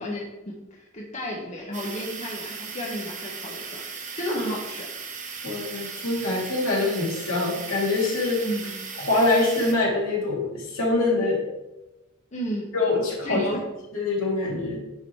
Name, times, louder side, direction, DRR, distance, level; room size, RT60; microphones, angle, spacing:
voice 1, 0.0-4.9 8.2-8.8 12.3-12.7 13.2-13.6, equal, 35° left, -3 dB, 1.1 m, -33 dB
sound 1, 1.7-9.7, right 5 dB, 35° right, 1.1 m, -37 dB
voice 2, 5.4-8.4 9.0-11.4 12.7-13.4 13.9-14.8, left 2 dB, 75° left, -4 dB, 2.7 m, -24 dB
9.6 x 3.9 x 4.6 m, 0.99 s
head